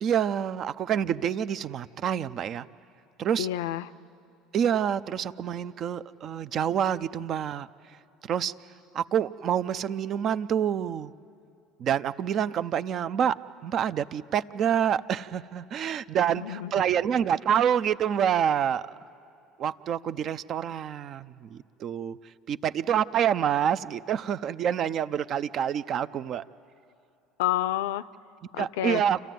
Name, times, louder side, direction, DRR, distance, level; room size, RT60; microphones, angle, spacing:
voice 1, 0.0-2.7 3.2-3.5 4.5-7.7 8.2-8.5 8.9-11.1 11.8-18.9 19.6-22.2 22.5-26.4 28.6-29.2, right 9 dB, 50° right, 14 dB, 0.6 m, -27 dB
voice 2, 3.4-3.9 16.3-16.7 27.4-28.1 28.5-29.0, left 13 dB, 80° left, 17 dB, 0.5 m, -29 dB
27.5 x 14.0 x 9.3 m, 2.5 s
hypercardioid pair, 75°, 0 cm